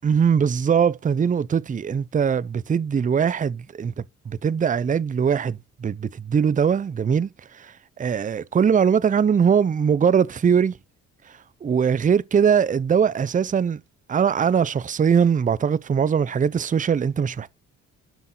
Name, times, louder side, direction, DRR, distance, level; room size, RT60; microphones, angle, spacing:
voice 1, 0.0-3.9 4.3-10.8 11.6-13.8 14.1-17.5, right 7 dB, 25° right, 0.6 m, -21 dB
11.0 x 6.0 x 3.8 m
cardioid pair, 90°, 30 cm